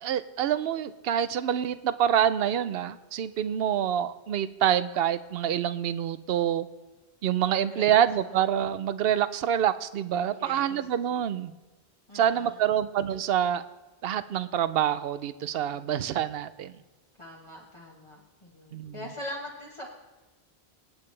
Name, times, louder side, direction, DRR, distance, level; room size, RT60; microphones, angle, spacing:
voice 1, 0.0-6.7 7.2-11.5 12.1-13.6 14.0-16.7 18.7-19.0, right 10 dB, 70° right, 14 dB, 0.8 m, -26 dB
voice 2, 7.5-8.0 8.3-8.4 10.3-10.9 12.1-12.8 15.7-15.9 17.2-19.9, left 1 dB, 30° left, -3 dB, 1.3 m, -43 dB
25.5 x 8.8 x 3.2 m, 1.2 s
omnidirectional pair, 1.1 m